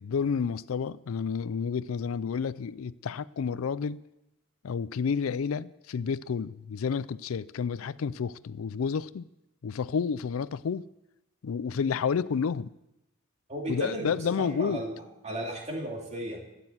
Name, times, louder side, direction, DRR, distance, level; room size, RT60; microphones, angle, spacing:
voice 1, 0.0-4.0 4.6-9.3 9.6-10.8 11.4-12.7 13.7-14.8, left 6 dB, 85° left, 0.4 m, -30 dB
voice 2, 13.5-16.6, right 1 dB, 35° right, 2.6 m, -35 dB
12.0 x 10.0 x 7.4 m
head